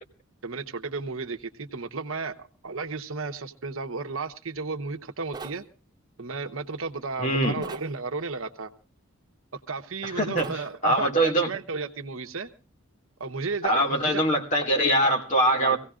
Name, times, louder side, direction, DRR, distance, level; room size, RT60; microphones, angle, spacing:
voice 1, 0.4-5.6 6.2-8.7 9.5-12.5 13.2-14.2 15.6-15.8, right 4 dB, 75° right, 1.0 m, -33 dB
sound 1, 5.3-5.6 7.6-7.9 10.4-10.6, right 3 dB, 20° right, 1.8 m, -39 dB
voice 2, 7.2-7.6 10.2-11.5 13.6-15.8, right 1 dB, 35° left, 2.1 m, -23 dB
24.5 x 17.0 x 2.5 m
head